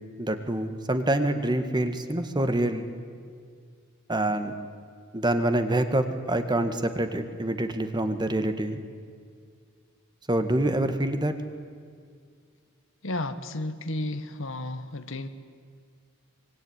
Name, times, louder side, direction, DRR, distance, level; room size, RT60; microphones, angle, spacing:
voice 1, 0.2-2.9 4.1-4.5 5.1-8.8 10.3-11.3, right 1 dB, 20° right, 8 dB, 1.9 m, -26 dB
voice 2, 13.0-15.3, left 1 dB, 65° left, 10 dB, 1.6 m, -32 dB
25.0 x 24.0 x 9.9 m, 2.1 s
head